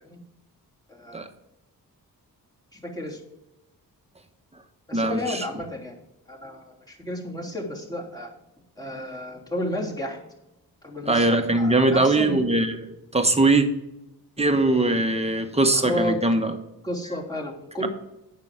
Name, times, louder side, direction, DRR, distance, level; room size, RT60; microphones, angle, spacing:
voice 1, 0.9-1.2 2.7-3.2 4.9-5.9 6.3-8.3 8.8-10.2 10.8-11.3 11.6-12.4 15.7-16.2 16.8-17.9, left 1 dB, 10° left, -3 dB, 3.1 m, -32 dB
voice 2, 4.9-5.4 11.1-12.8 13.1-13.7 14.4-16.5, right 2 dB, 15° right, 6 dB, 1.3 m, -21 dB
9.3 x 6.2 x 5.2 m, 0.90 s
cardioid pair, 75°, 36 cm